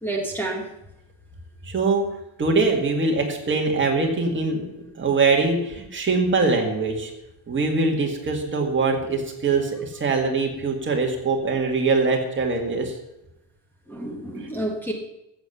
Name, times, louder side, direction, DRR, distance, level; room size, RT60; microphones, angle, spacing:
voice 1, 0.0-0.7 13.9-14.9, right 1 dB, 5° left, -2 dB, 1.4 m, -29 dB
voice 2, 1.7-2.0 2.4-4.6 5.0-7.1 7.5-9.7 10.0-12.9, right 3 dB, 25° right, 1 dB, 2.1 m, -22 dB
14.0 x 8.1 x 6.9 m, 0.89 s
cardioid pair, 175°, 49 cm